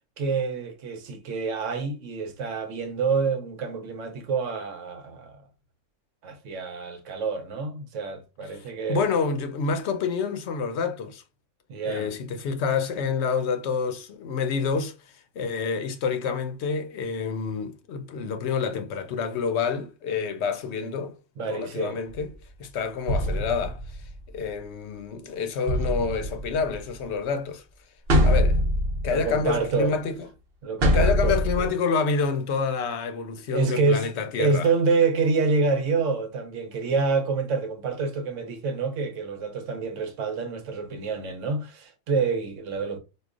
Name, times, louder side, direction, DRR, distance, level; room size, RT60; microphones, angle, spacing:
voice 1, 0.2-5.4 6.2-9.0 11.7-12.1 21.4-22.0 29.1-30.0 30.6-31.7 33.5-34.1 34.4-43.0, right 4 dB, 80° right, 1.0 m, -27 dB
voice 2, 8.9-11.2 11.8-14.9 15.4-21.1 21.5-22.3 22.6-23.8 24.3-27.6 28.2-28.6 29.0-30.3 30.9-34.7, left 5 dB, 70° left, 0.8 m, -28 dB
sound 1, 22.1-22.3 23.1-24.5 25.7-27.0 28.1-29.6 30.8-31.7, equal, 55° right, 1.0 m, -24 dB
4.6 x 2.3 x 2.4 m
omnidirectional pair, 1.3 m